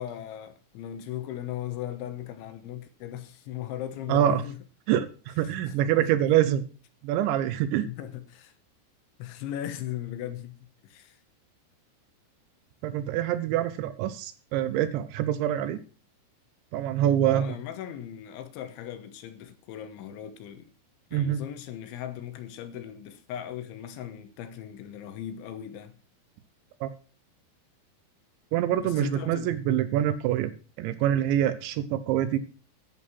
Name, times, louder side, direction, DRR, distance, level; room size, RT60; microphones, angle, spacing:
voice 1, 0.0-4.6 5.4-6.3 7.8-8.5 9.2-10.6 10.8-11.2 17.2-20.7 21.1-26.0 28.8-29.5, left 11 dB, 75° left, 3.1 m, -38 dB
voice 2, 4.1-4.4 4.9-6.6 7.0-7.9 12.8-15.8 16.7-17.5 21.1-21.4 26.8-26.9 28.5-30.5 30.8-32.4, right 11 dB, 75° right, 2.8 m, -25 dB
11.0 x 8.5 x 5.9 m
omnidirectional pair, 5.9 m